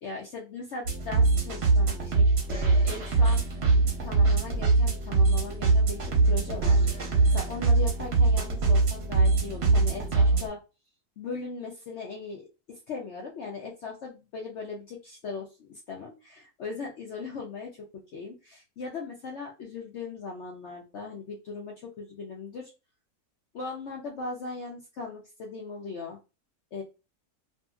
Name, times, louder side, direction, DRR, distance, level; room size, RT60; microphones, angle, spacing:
voice 1, 0.0-3.4 4.0-10.6 11.2-22.7 23.5-26.2 26.7-26.8, left 4 dB, 60° left, -1 dB, 0.8 m, -39 dB
sound 1, 0.8-10.5, right 3 dB, 50° right, 0.9 m, -23 dB
2.7 x 2.6 x 2.3 m, 0.29 s
omnidirectional pair, 1.6 m